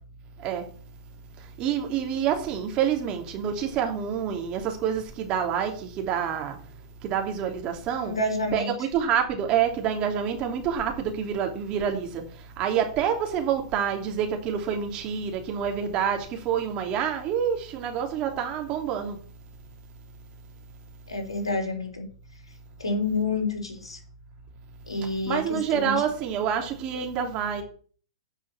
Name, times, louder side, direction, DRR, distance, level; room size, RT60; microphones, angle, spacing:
voice 1, 1.6-6.6 7.0-8.2 8.5-12.2 12.6-19.2 25.3-27.6, right 8 dB, 35° right, 2.9 m, -27 dB
voice 2, 8.0-8.7 21.1-22.1 22.8-24.0 24.9-26.0, left 2 dB, 85° left, 3.8 m, -28 dB
9.1 x 6.2 x 8.3 m
hypercardioid pair, 110°, 3 cm